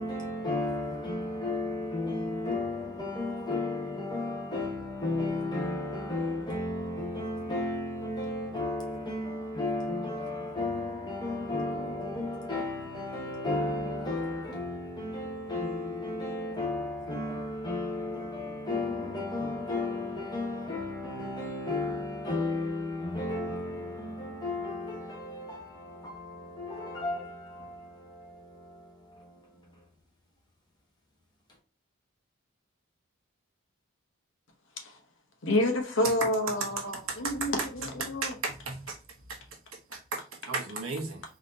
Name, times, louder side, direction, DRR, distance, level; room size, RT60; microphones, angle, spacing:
voice 1, 0.0-29.8, left 2 dB, 20° left, 1.1 m, -34 dB
voice 2, 35.4-38.3, left 1 dB, 65° left, 0.9 m, -29 dB
voice 3, 37.1-37.5 38.0-39.0 39.3-39.4 39.9-41.2, right 4 dB, 80° right, 1.0 m, -35 dB
4.1 x 2.8 x 2.7 m
head